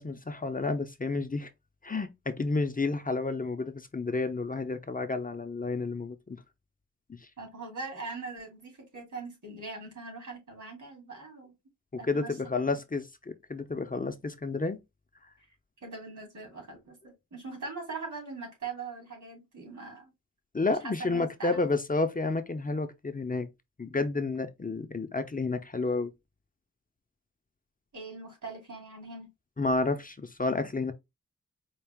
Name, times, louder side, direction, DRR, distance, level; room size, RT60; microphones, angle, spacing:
voice 1, 0.0-1.5 1.8-6.4 7.1-7.2 11.9-14.8 20.5-23.5 23.8-26.1 29.6-30.9, left 3 dB, 25° left, 0.6 m, -30 dB
voice 2, 7.4-11.5 12.0-12.8 15.4-15.5 15.8-20.1 21.0-21.7 27.9-29.3, right 4 dB, 70° right, 2.8 m, -41 dB
4.7 x 2.4 x 3.4 m
wide cardioid pair, 70°, 31 cm